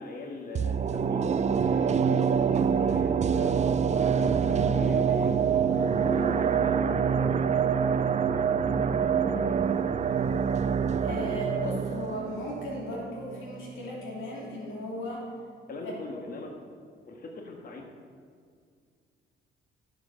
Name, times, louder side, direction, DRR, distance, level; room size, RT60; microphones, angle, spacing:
voice 1, 0.0-5.7 6.0-6.8 15.7-16.5 17.0-17.8, left 2 dB, 45° left, 2 dB, 1.4 m, -41 dB
sound 1, 0.5-13.6 14.0-14.1, right 7 dB, 35° right, 0.4 m, -26 dB
voice 2, 11.0-15.3 15.8-16.0, equal, 85° left, -3 dB, 2.8 m, -36 dB
11.5 x 6.4 x 5.5 m, 2.1 s
cardioid pair, 90°, 20 cm